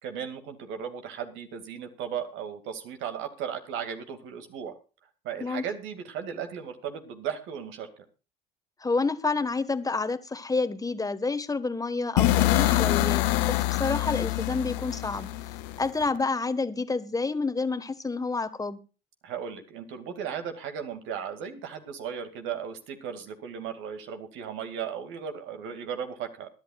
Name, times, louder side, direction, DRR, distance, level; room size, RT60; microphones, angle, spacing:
voice 1, 0.0-4.7 5.2-7.9 19.2-26.5, right 8 dB, 65° right, 7 dB, 2.2 m, -36 dB
voice 2, 8.8-15.3 15.8-18.8, left 3 dB, 15° left, 13 dB, 1.4 m, -29 dB
sound 1, 12.2-16.1, left 16 dB, 80° left, 0.9 m, -25 dB
22.0 x 11.0 x 2.4 m, 0.34 s
hypercardioid pair, 65°, 21 cm